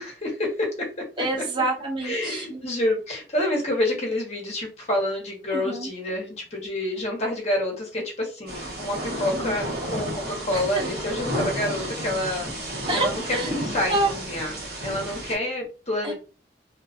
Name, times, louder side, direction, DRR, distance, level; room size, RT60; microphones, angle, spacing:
voice 1, 0.0-1.1 2.0-16.1, left 1 dB, 40° left, -1 dB, 0.9 m, -28 dB
voice 2, 1.2-2.6 5.5-5.9 9.3-9.6 10.5-10.8 12.9-13.5 13.9-14.1 16.0-16.1, right 2 dB, 30° right, 3 dB, 0.3 m, -27 dB
Thunder / Rain, 8.5-15.3, equal, 60° right, 1.0 m, -32 dB
2.3 x 2.3 x 2.4 m, 0.33 s
head